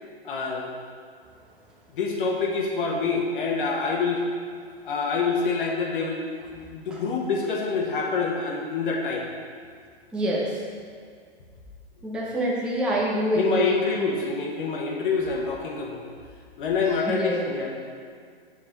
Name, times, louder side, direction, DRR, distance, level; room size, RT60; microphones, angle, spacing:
voice 1, 0.2-0.7 1.9-4.2 4.8-9.3 13.3-16.1 16.6-17.7, left 4 dB, 55° left, -1 dB, 1.3 m, -26 dB
voice 2, 10.1-10.6 12.0-14.1 16.8-17.4, right 1 dB, 5° right, -5 dB, 0.5 m, -27 dB
4.9 x 4.8 x 5.9 m, 2.1 s
hypercardioid pair, 140°, 31 cm